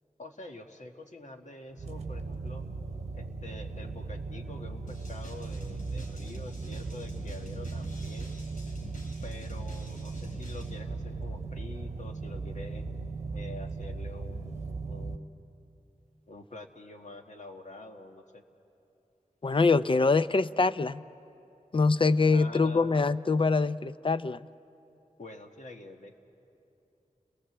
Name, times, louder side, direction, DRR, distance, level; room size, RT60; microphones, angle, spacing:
voice 1, 0.2-2.6 3.1-8.3 9.2-12.8 13.3-15.3 16.3-18.4 22.3-23.0 25.2-26.2, left 2 dB, 60° left, 4 dB, 1.6 m, -46 dB
sound 1, 1.7-15.2, right 3 dB, 50° right, 1.0 m, -37 dB
sound 2, 4.9-10.8, left 1 dB, 80° left, 3.5 m, -50 dB
voice 2, 19.4-21.0 21.7-24.5, left 4 dB, 40° left, 15 dB, 0.5 m, -24 dB
30.0 x 18.5 x 7.8 m, 2.9 s
wide cardioid pair, 70°, 14 cm